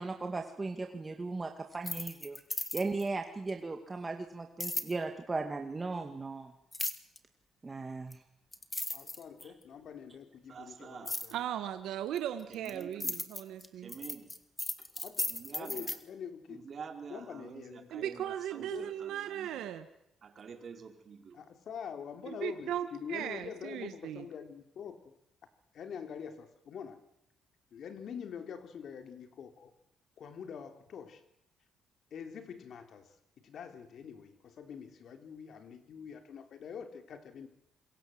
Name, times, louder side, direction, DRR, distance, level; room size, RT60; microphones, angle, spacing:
voice 1, 0.0-2.4 2.7-6.5 7.6-8.2, right 3 dB, 25° right, 5 dB, 2.1 m, -37 dB
sound 1, 1.7-3.1 4.6-4.9 6.7-7.2 8.1-8.2 8.5-9.6 11.1-11.3 12.2-16.0, left 2 dB, 15° left, 2.1 m, -36 dB
voice 2, 8.9-11.4 15.0-15.2 15.5-16.6 17.1-18.1 18.6-18.9 21.3-25.1 25.7-27.0 27.7-29.7 30.2-31.2 32.1-33.1 33.4-37.5, left 7 dB, 65° left, 7 dB, 3.5 m, -45 dB
voice 3, 10.5-11.2 12.5-13.2 13.7-14.4 14.8-14.9 15.3-16.0 16.5-19.7 20.2-21.4, right 6 dB, 50° right, 4 dB, 4.8 m, -48 dB
voice 4, 11.3-13.9 17.9-19.8 22.3-24.2, right 11 dB, 85° right, 9 dB, 1.6 m, -37 dB
27.0 x 23.0 x 7.9 m, 0.78 s
cardioid pair, 90°, 0 cm